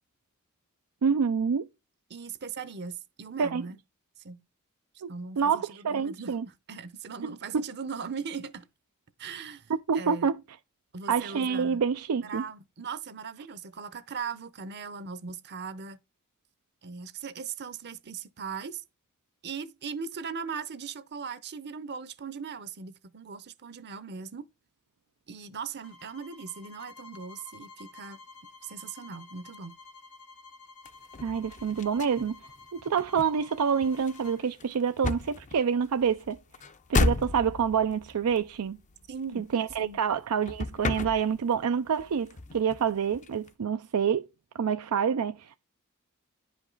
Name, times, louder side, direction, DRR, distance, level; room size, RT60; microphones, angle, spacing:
voice 1, 1.0-1.7 3.4-3.6 5.0-5.1 5.4-6.5 7.2-7.6 9.9-10.4 11.1-12.4 31.2-32.4 32.7-36.4 36.9-38.8 39.4-44.3 44.5-45.6, right 6 dB, 85° right, 0.4 m, -27 dB
voice 2, 2.1-3.8 4.2-4.4 5.1-8.7 9.2-10.3 10.9-11.8 12.2-16.0 16.8-18.8 19.4-24.5 25.3-28.2 28.6-29.8 39.1-39.5 39.8-40.0, right 5 dB, 50° right, 0.7 m, -39 dB
sound 1, 25.8-34.4, left 4 dB, 80° left, 2.3 m, -51 dB
sound 2, 30.8-40.2 40.4-41.7 42.0-43.5, left 3 dB, 35° left, 0.5 m, -34 dB
10.5 x 5.2 x 3.9 m
head